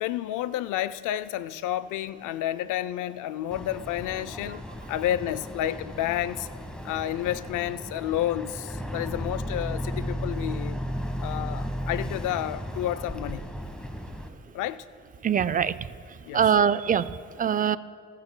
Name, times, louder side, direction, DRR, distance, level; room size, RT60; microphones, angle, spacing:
voice 1, 0.0-6.5 6.8-10.8 11.2-13.5 14.5-14.9 16.2-16.6, left 12 dB, 85° left, 0.5 m, -30 dB
Boat Water vehicle, 3.5-14.3, equal, 5° left, 1.3 m, -35 dB
voice 2, 15.2-15.9 16.3-17.8, right 7 dB, 30° right, 0.4 m, -23 dB
21.5 x 14.5 x 2.2 m
cardioid pair, 90°, 30 cm